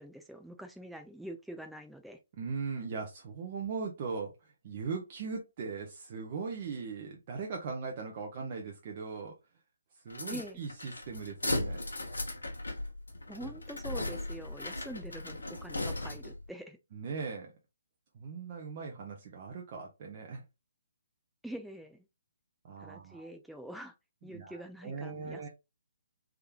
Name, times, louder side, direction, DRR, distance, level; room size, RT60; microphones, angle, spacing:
voice 1, 0.0-2.2 10.3-10.6 13.3-16.8 21.4-22.1 22.8-24.0 24.2-25.5, right 1 dB, ahead, 0.4 m, -45 dB
voice 2, 2.4-9.3 10.0-11.8 16.9-17.5 18.1-20.4 22.6-23.3 24.3-25.5, right 5 dB, 40° right, 0.8 m, -39 dB
sound 1, 10.1-16.4, left 2 dB, 80° left, 1.1 m, -37 dB
3.6 x 3.3 x 2.2 m
figure-of-eight pair, 135°, 0 cm